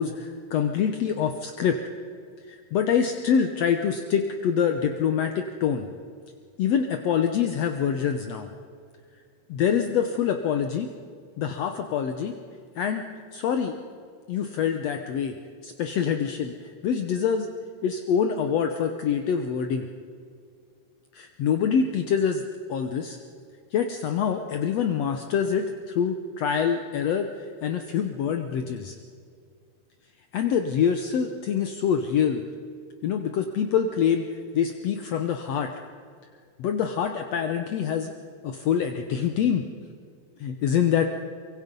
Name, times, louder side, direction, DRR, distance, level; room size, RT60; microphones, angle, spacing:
voice 1, 0.0-1.8 2.5-5.9 6.6-8.5 9.5-10.9 11.4-12.4 12.8-13.0 13.3-13.7 14.3-15.4 15.6-16.5 16.8-17.5 17.8-19.8 21.1-22.4 22.7-23.2 23.7-29.0 30.3-32.4 33.0-34.3 34.5-35.7 36.6-38.1 38.4-39.6 40.4-41.1, left 7 dB, 65° left, 6 dB, 1.9 m, -25 dB
24.0 x 23.0 x 5.4 m, 2.2 s
omnidirectional pair, 3.4 m